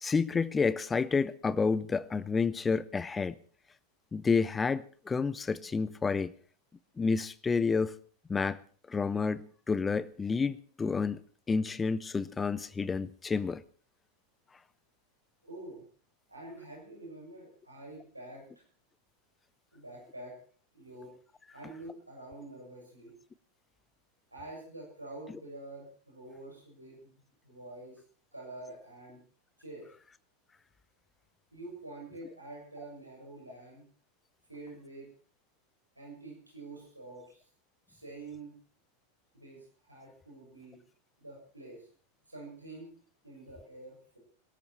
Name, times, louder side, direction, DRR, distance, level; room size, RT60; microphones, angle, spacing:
voice 1, 0.0-3.4 4.1-6.3 7.0-7.9 8.3-8.6 8.9-11.2 11.5-13.6, left 5 dB, 15° left, 0.7 m, -29 dB
voice 2, 15.4-15.8 16.3-18.5 19.7-20.4 20.7-21.1 21.5-23.1 24.3-27.1 27.4-28.0 28.3-29.2 29.6-29.9 31.5-33.8 34.5-35.1 36.0-37.4 37.9-38.6 39.3-40.8 41.2-41.9 42.3-42.9 43.2-44.2, right 2 dB, 85° right, 6.9 m, -47 dB
22.0 x 13.0 x 4.4 m
figure-of-eight pair, 90°, 0 cm